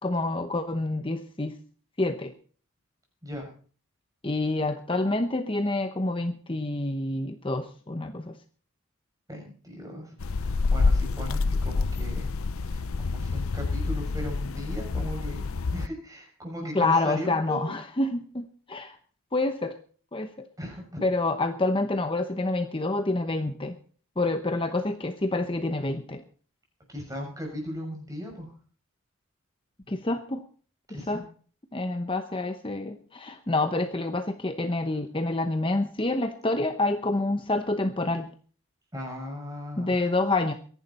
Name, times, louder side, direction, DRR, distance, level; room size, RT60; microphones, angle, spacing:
voice 1, 0.0-1.5 2.0-2.3 4.2-8.4 16.7-19.0 19.3-19.8 20.1-20.3 21.0-23.8 24.2-26.2 29.9-30.4 31.1-31.2 31.7-38.3 39.8-40.5, left 2 dB, 25° left, 7 dB, 0.9 m, -27 dB
voice 2, 9.3-12.3 12.7-17.7 20.6-21.0 26.9-28.5 30.9-31.2 38.9-40.0, equal, 15° right, 1 dB, 6.4 m, -37 dB
sound 1, 10.2-15.9, left 3 dB, 80° left, 0.6 m, -27 dB
23.5 x 11.0 x 4.3 m, 0.43 s
head